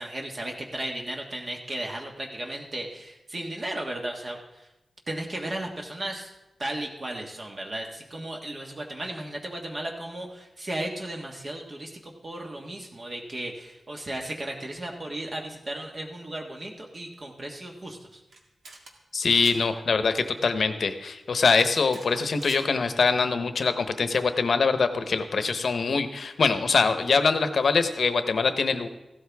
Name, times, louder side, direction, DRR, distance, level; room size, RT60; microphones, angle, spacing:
voice 1, 0.0-4.7 5.1-6.3 6.6-18.2, right 1 dB, 40° right, 0 dB, 1.5 m, -35 dB
sound 1, 18.3-18.4 18.6-18.9 19.2-19.6 21.6-22.6, right 2 dB, 75° right, 1.9 m, -44 dB
voice 2, 19.1-28.9, left 4 dB, 70° left, 9 dB, 0.9 m, -23 dB
15.5 x 12.5 x 3.5 m, 0.98 s
wide cardioid pair, 95°, 0 cm